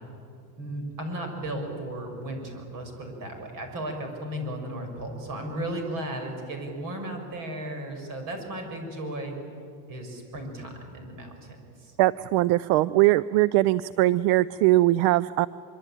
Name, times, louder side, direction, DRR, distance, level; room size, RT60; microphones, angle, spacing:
voice 1, 0.6-9.3 9.9-11.9, right 1 dB, 45° right, 4 dB, 6.1 m, -35 dB
voice 2, 12.0-15.5, right 17 dB, 70° right, 18 dB, 0.6 m, -21 dB
24.5 x 24.0 x 9.0 m, 2.5 s
cardioid pair, 150°, 47 cm